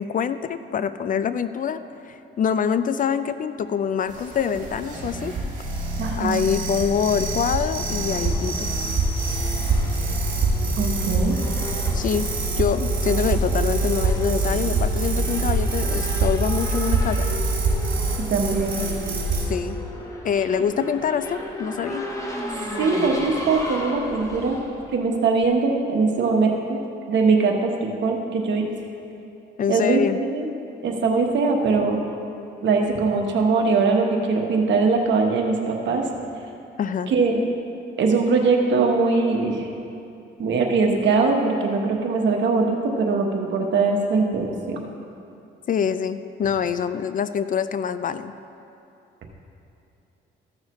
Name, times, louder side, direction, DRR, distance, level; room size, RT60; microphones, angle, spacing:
voice 1, 0.0-5.4 6.2-8.7 11.9-12.3 12.6-17.3 19.4-19.8 20.2-22.1 29.6-30.2 36.8-37.1 45.7-48.3, left 7 dB, 45° left, 12 dB, 0.4 m, -25 dB
sound 1, 4.1-19.4, right 3 dB, 40° right, 2.3 m, -25 dB
voice 2, 6.0-6.4 10.8-11.4 18.3-18.8 22.8-24.6 24.9-26.8 27.1-28.7 29.7-30.5 30.8-32.0 32.6-36.1 37.1-37.4 38.0-39.7 40.4-44.8, right 4 dB, 65° right, 2 dB, 1.3 m, -21 dB
Race car auto racing / Accelerating revving vroom, 7.7-25.7, left 1 dB, 15° left, 1.3 m, -35 dB
15.0 x 6.5 x 3.1 m, 2.7 s
cardioid pair, 90°, 20 cm